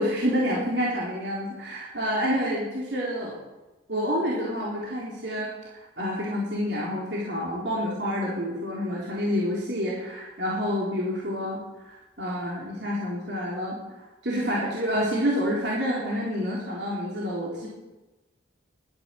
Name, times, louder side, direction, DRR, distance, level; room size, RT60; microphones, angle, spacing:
voice 1, 0.0-3.4 3.9-13.8 14.2-17.7, equal, 60° right, -4 dB, 3.7 m, -28 dB
12.0 x 11.0 x 9.0 m, 1.1 s
head